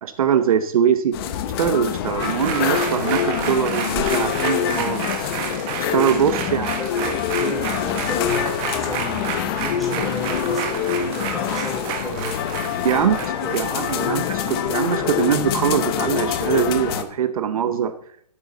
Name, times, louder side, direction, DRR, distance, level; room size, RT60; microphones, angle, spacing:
voice 1, 0.0-1.2 1.6-5.3 5.9-6.7 12.8-13.2 13.5-17.9, right 8 dB, 60° right, 10 dB, 0.9 m, -22 dB
sound 1, 1.1-17.0, left 9 dB, 35° left, 0.9 m, -25 dB
sound 2, 2.2-14.9 15.2-15.3, right 8 dB, 25° right, 1.3 m, -31 dB
voice 2, 6.3-10.9 11.2-12.4 12.9-13.6 13.9-14.2, left 2 dB, ahead, -2 dB, 2.8 m, -33 dB
12.5 x 8.5 x 3.9 m, 0.66 s
hypercardioid pair, 140°, 21 cm